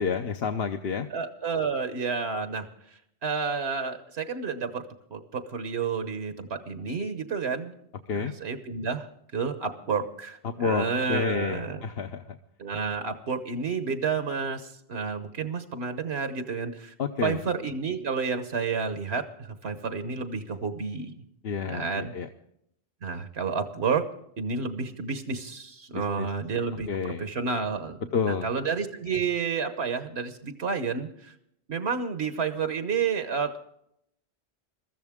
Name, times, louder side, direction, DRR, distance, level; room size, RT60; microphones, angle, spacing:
voice 1, 0.0-1.1 8.1-8.3 10.4-12.2 17.0-17.4 21.4-22.3 25.9-26.3 26.9-27.2 28.1-28.5, left 6 dB, 65° left, 5 dB, 1.0 m, -29 dB
voice 2, 1.1-2.7 3.2-7.7 8.1-11.8 12.6-16.9 17.2-21.1 21.7-22.1 23.0-24.0 24.4-26.9 27.2-31.3 31.7-33.6, right 5 dB, 75° right, 9 dB, 1.4 m, -30 dB
22.0 x 14.0 x 3.6 m, 0.75 s
omnidirectional pair, 1.1 m